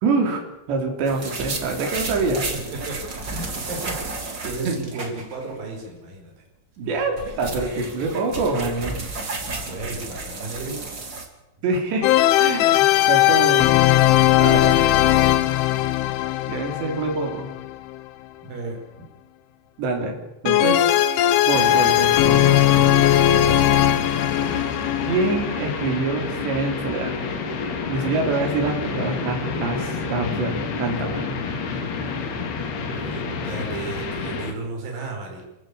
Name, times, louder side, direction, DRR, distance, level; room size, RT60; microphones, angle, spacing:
voice 1, 0.0-2.4 4.7-4.8 6.8-9.0 11.6-12.1 12.4-13.8 14.4-14.8 16.5-17.5 19.8-20.2 20.4-21.0 21.5-23.1 25.1-27.2 27.9-31.3, right 3 dB, 65° right, 2 dB, 5.7 m, -25 dB
sound 1, 1.0-5.5 5.8-5.9 6.8-11.3, right 3 dB, 30° right, 2.7 m, -32 dB
voice 2, 2.5-6.3 9.4-10.9 18.4-19.1 22.7-23.6 32.9-35.4, right 3 dB, 50° right, 1 dB, 7.0 m, -34 dB
sound 2, 12.0-18.0 20.5-26.2, left 13 dB, 90° left, 3.5 m, -18 dB
sound 3, 21.5-34.5, left 5 dB, 60° left, 4.2 m, -29 dB
29.0 x 15.5 x 8.6 m, 0.96 s
omnidirectional pair, 5.4 m